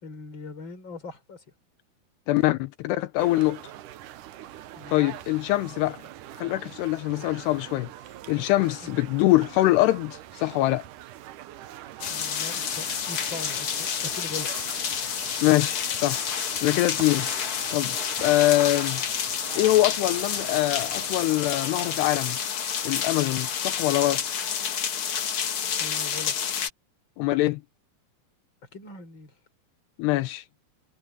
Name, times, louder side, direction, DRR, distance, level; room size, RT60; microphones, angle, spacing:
voice 1, 0.0-1.4 4.8-5.0 8.8-9.0 12.1-14.5 25.8-26.3 28.7-29.3, left 4 dB, 30° left, 4.5 m, -40 dB
voice 2, 2.3-3.6 4.9-6.0 6.4-7.9 8.3-10.9 15.4-16.2 16.6-17.3 17.7-18.0 18.2-19.0 19.6-22.4 22.8-24.2 27.2-27.6 30.0-30.4, left 17 dB, 85° left, 2.9 m, -23 dB
sound 1, 3.2-22.2, right 13 dB, 70° right, 2.0 m, -43 dB
sound 2, 12.0-26.7, left 8 dB, 65° left, 1.4 m, -29 dB
omnidirectional pair, 4.7 m